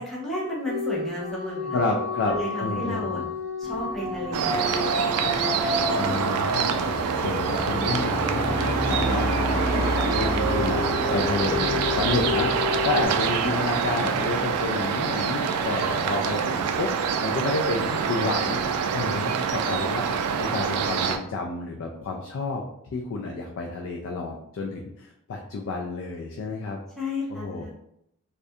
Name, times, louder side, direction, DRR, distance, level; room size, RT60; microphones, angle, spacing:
voice 1, 0.0-1.8 2.2-3.2 3.6-5.8 27.0-27.7, left 1 dB, ahead, -6 dB, 0.5 m, -33 dB
sound 1, 0.7-7.6 10.2-13.1, left 3 dB, 30° left, 0.9 m, -31 dB
voice 2, 1.7-3.2 5.9-18.6 18.9-20.1 20.4-26.8 27.3-27.7, left 3 dB, 60° left, 1 dB, 0.3 m, -30 dB
sound 2, 3.6-14.6, right 1 dB, 50° right, 0.6 m, -30 dB
sound 3, 4.3-21.2, right 6 dB, 85° right, 0.3 m, -26 dB
2.4 x 2.1 x 2.6 m, 0.76 s
head